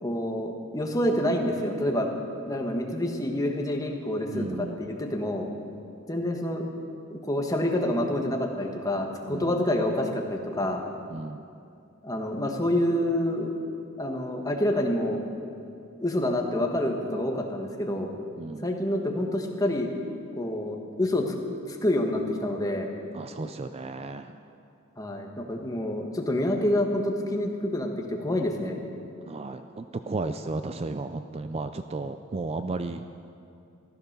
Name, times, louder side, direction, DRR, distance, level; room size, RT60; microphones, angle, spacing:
voice 1, 0.0-2.1 2.4-5.5 6.1-6.7 7.1-10.9 12.0-13.5 14.0-15.2 16.0-18.1 18.6-19.9 20.4-21.3 21.7-22.9 25.0-28.8, left 1 dB, 15° left, 1 dB, 1.5 m, -27 dB
voice 2, 4.3-4.8 9.3-9.6 11.1-11.4 18.4-18.7 23.1-24.4 29.3-33.2, right 3 dB, 30° right, 9 dB, 0.4 m, -34 dB
14.5 x 13.0 x 6.7 m, 2.5 s
head